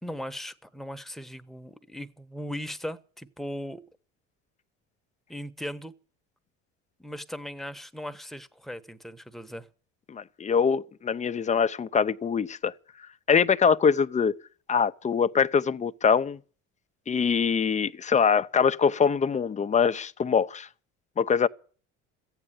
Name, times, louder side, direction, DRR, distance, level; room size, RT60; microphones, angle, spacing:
voice 1, 0.0-3.8 5.3-5.9 7.0-9.7, equal, ahead, 1.1 m, -38 dB
voice 2, 10.1-12.7 13.3-14.4 14.7-16.4 17.1-20.7 21.2-21.5, left 6 dB, 20° left, 0.7 m, -23 dB
14.5 x 9.1 x 9.9 m
supercardioid pair, 105°, 33 cm